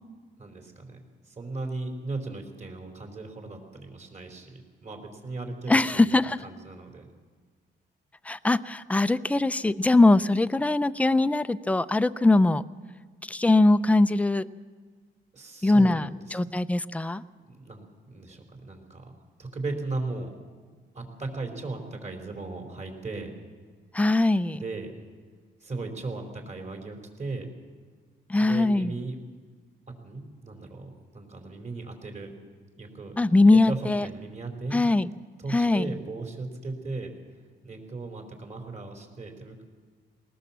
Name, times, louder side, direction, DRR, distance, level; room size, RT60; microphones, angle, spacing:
voice 1, 0.4-1.0 1.2-7.1 15.3-16.4 17.4-19.1 19.4-20.4 20.9-23.3 24.5-24.9 25.6-27.6 28.4-29.2 30.0-32.3 32.7-33.2 33.5-34.8 35.4-37.1 37.6-39.6, right 3 dB, 35° right, 4 dB, 4.5 m, -37 dB
voice 2, 5.7-6.4 8.2-12.7 13.3-14.5 15.6-17.2 23.9-24.6 28.3-28.9 33.2-34.1 34.7-35.1 35.5-35.9, left 2 dB, 5° left, 13 dB, 0.6 m, -21 dB
19.0 x 19.0 x 7.4 m, 1.5 s
cardioid pair, 90°, 20 cm